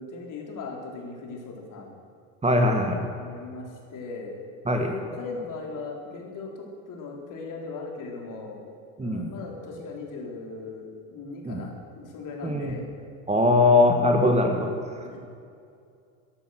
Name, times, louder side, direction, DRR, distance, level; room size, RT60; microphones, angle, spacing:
voice 1, 0.0-1.9 3.2-4.3 4.7-8.6 9.0-11.7 12.0-12.9 15.0-15.2, left 3 dB, 50° left, 0 dB, 3.8 m, -38 dB
voice 2, 2.4-3.0 4.7-4.9 9.0-9.3 11.5-11.6 12.4-12.7 13.3-14.7, left 2 dB, 15° right, 3 dB, 1.7 m, -21 dB
14.0 x 11.5 x 6.4 m, 2.4 s
supercardioid pair, 90°, 40 cm